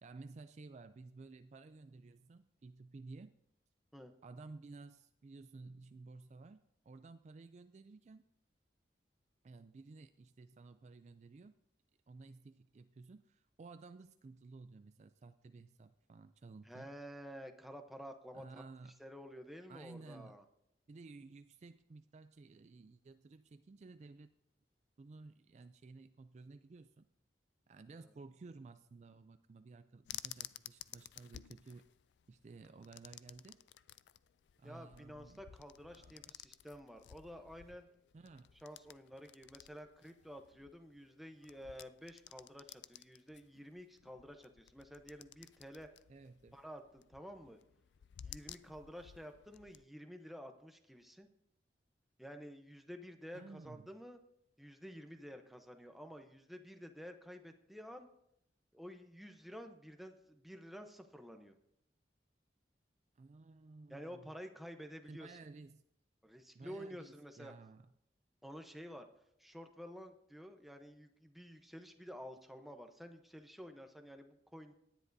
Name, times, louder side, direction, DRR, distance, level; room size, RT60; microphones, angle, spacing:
voice 1, 0.0-3.3 4.2-8.2 9.4-11.6 12.1-16.9 18.3-19.0 19.7-20.4 20.9-24.3 25.0-27.1 27.7-31.9 32.3-33.6 34.6-35.4 35.9-36.1 38.1-38.5 46.1-46.6 53.3-53.9 63.2-64.3 65.1-65.8 66.5-67.9, right 3 dB, 40° right, 10 dB, 0.3 m, -54 dB
voice 2, 16.6-18.6 19.0-20.4 27.9-28.1 34.6-37.9 38.6-45.9 46.5-47.6 48.2-51.3 52.2-54.2 54.6-58.1 58.7-61.5 63.9-65.4 66.2-67.5 68.4-69.1 69.4-74.7, equal, ahead, 5 dB, 0.8 m, -51 dB
sound 1, 30.0-49.8, left 12 dB, 75° left, 0.3 m, -55 dB
18.0 x 10.5 x 2.7 m, 0.77 s
head